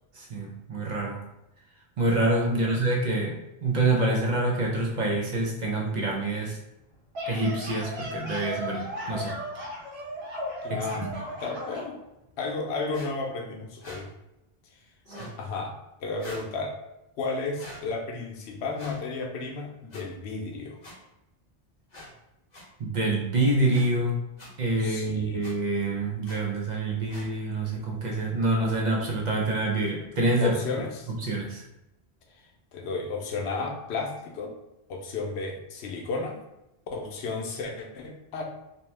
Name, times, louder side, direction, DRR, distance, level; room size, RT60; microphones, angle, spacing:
voice 1, 0.1-1.2 2.0-3.4 3.6-6.6 7.3-9.4 10.7-11.1 15.2-15.3 22.8-24.2 24.6-30.6 31.1-31.6, right 2 dB, 50° right, -1 dB, 0.6 m, -26 dB
voice 2, 2.5-2.9 10.6-11.1 11.4-12.0 12.4-14.1 15.4-16.8 17.2-20.8 24.8-25.4 30.4-31.1 32.7-34.5 34.9-36.4 36.9-38.4, left 3 dB, 90° left, 2 dB, 0.9 m, -33 dB
sound 1, 6.9-11.9, left 1 dB, 75° right, 1.1 m, -36 dB
sound 2, 12.9-13.1 13.8-14.0 15.0-15.4 16.2-16.5 17.6-17.8 18.7-19.0 19.9-20.0 20.8-20.9 21.9-22.1 22.5-22.6 23.7-23.9 24.4-24.5 25.4-25.5 26.2-26.4 27.1-27.3, equal, 45° left, 0.7 m, -44 dB
2.8 x 2.1 x 3.1 m, 0.90 s
omnidirectional pair, 1.1 m